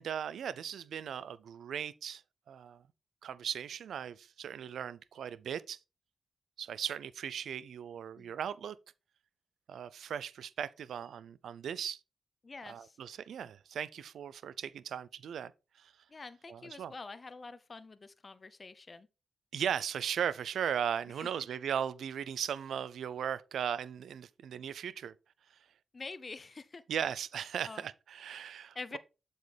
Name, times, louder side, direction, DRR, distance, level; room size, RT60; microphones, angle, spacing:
voice 1, 0.0-2.2 2.5-2.8 3.2-5.8 6.6-8.8 9.7-12.0 12.7-15.5 15.8-15.9 16.5-16.9 19.5-25.1 26.9-29.0, right 8 dB, 85° right, 0.4 m, -37 dB
voice 2, 12.4-13.0 16.1-19.1 21.2-21.3 25.9-26.8 27.7-27.8 28.7-29.0, left 3 dB, 45° left, 0.6 m, -46 dB
7.6 x 5.3 x 3.3 m
cardioid pair, 55°, 0 cm